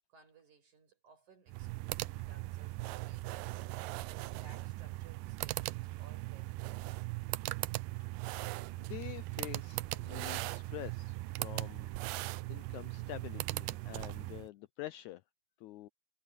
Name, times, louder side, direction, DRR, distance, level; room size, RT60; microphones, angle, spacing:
voice 1, 0.1-7.1, right 5 dB, 60° right, 7.5 m, -61 dB
sound 1, 1.5-14.5, right 20 dB, 85° right, 2.2 m, -39 dB
voice 2, 8.8-12.0 12.5-15.2 15.6-15.9, left 15 dB, 80° left, 1.7 m, -46 dB
omnidirectional pair, 3.9 m